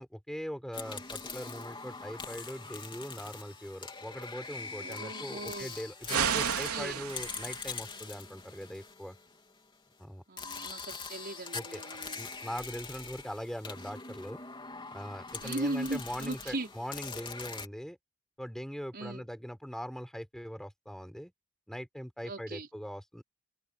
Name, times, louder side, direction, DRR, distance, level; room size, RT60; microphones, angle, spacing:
voice 1, 0.0-9.2 10.0-10.2 11.5-11.8 12.2-14.4 14.9-18.0 18.4-21.3 21.7-23.2, equal, ahead, 4.3 m, -41 dB
sound 1, 0.7-9.6 10.4-17.7, left 4 dB, 20° left, 3.7 m, -43 dB
voice 2, 4.8-5.8 6.4-7.0 10.3-12.2 15.4-16.7 18.9-19.2 22.2-22.7, right 2 dB, 45° right, 5.2 m, -38 dB
sound 2, 6.1-7.7, right 7 dB, 85° right, 3.6 m, -31 dB
open air
head